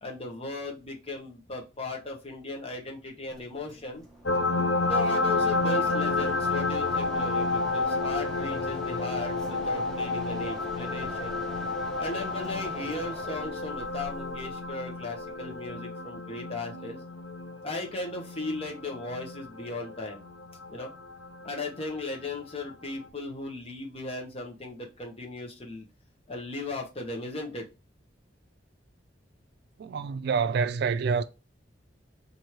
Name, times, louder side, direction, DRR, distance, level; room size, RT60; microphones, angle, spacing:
voice 1, 0.0-4.0 4.8-11.4 12.0-17.0 17.6-20.2 20.7-20.9 21.4-25.8 26.3-27.6, left 2 dB, 30° left, 0.9 m, -37 dB
Mechanisms, 3.3-15.7, right 1 dB, 5° left, 0.8 m, -45 dB
sound 1, 4.2-21.5 23.0-23.1, left 3 dB, 75° left, 0.7 m, -30 dB
voice 2, 29.8-31.2, right 5 dB, 60° right, 0.3 m, -27 dB
3.1 x 2.6 x 4.3 m
head